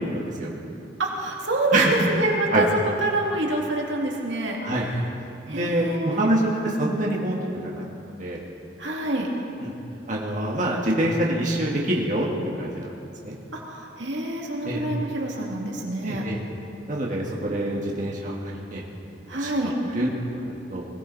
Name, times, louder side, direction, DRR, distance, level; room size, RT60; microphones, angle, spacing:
voice 1, 0.1-0.5 1.7-1.9 2.5-2.6 4.6-4.9 5.5-7.7 8.2-8.4 9.6-9.7 10.1-12.3 12.6-12.9 13.2-13.4 14.6-14.8 16.0-16.4 16.9-18.4 18.7-18.8 19.3-20.1 20.4-20.9, right 1 dB, 45° right, -3 dB, 1.8 m, -25 dB
voice 2, 1.0-5.0 5.5-6.3 8.8-9.3 13.5-16.2 19.3-19.8, right 2 dB, 85° right, -1 dB, 2.4 m, -27 dB
21.5 x 16.5 x 4.1 m, 2.7 s
head